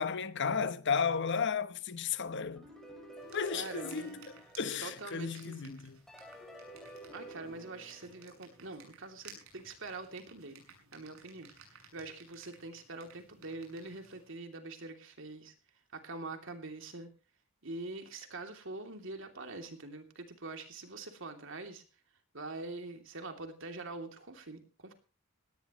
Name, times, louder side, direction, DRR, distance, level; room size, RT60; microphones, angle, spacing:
voice 1, 0.0-2.7 3.3-6.0, left 6 dB, 60° left, 1.0 m, -34 dB
sound 1, 2.6-5.4 6.1-8.9, right 1 dB, ahead, 5.8 m, -51 dB
sound 2, 3.2-14.3, right 5 dB, 85° right, 7.4 m, -58 dB
voice 2, 3.5-4.2 4.8-5.7 7.1-15.5 15.9-17.1 17.6-21.8 22.3-24.9, right 3 dB, 65° right, 3.0 m, -44 dB
18.5 x 18.0 x 3.1 m
head